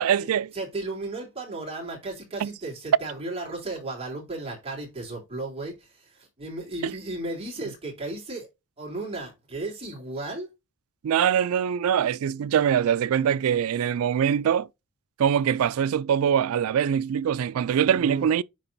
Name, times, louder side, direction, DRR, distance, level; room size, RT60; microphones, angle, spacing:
voice 1, 0.0-0.5 2.4-2.5 6.8-6.9 11.0-14.7 15.2-18.4, right 8 dB, 75° right, 0.3 m, -23 dB
voice 2, 0.5-8.5 8.8-10.5 13.2-13.3 14.2-14.3 17.9-18.3, right 2 dB, 25° right, 3.3 m, -35 dB
10.0 x 3.8 x 2.7 m
head